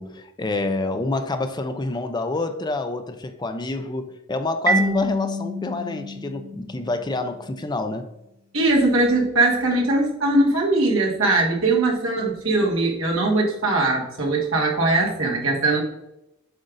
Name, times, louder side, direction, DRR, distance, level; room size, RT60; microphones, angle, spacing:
voice 1, 0.0-8.1, left 2 dB, 20° left, 0.5 m, -27 dB
Marimba xylophone, 4.7-7.3, equal, 15° right, 0.9 m, -27 dB
voice 2, 8.5-15.8, right 2 dB, 75° right, 1.6 m, -20 dB
7.9 x 5.1 x 2.5 m
head